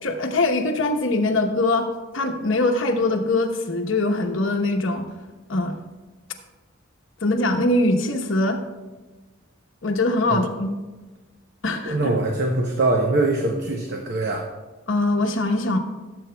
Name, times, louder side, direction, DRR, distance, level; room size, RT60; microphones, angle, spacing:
voice 1, 0.0-1.9 2.1-5.1 5.5-5.8 7.2-8.6 9.8-10.7 11.6-12.0 14.9-15.8, left 2 dB, 75° left, 3 dB, 1.0 m, -22 dB
voice 2, 11.9-14.4, right 2 dB, 55° right, 1 dB, 0.8 m, -22 dB
15.0 x 7.7 x 2.3 m, 1.2 s
head